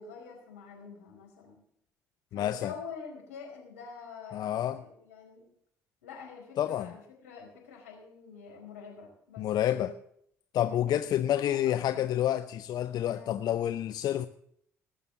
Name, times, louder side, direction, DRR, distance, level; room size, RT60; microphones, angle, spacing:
voice 1, 0.0-1.6 2.3-5.4 6.0-9.9 10.6-12.1 13.0-13.5, left 5 dB, 85° left, 4.6 m, -46 dB
voice 2, 2.3-2.7 4.3-4.8 6.6-6.9 9.4-9.9 10.5-14.3, left 11 dB, 60° left, 0.6 m, -29 dB
19.0 x 6.8 x 7.1 m
hypercardioid pair, 55°, 8 cm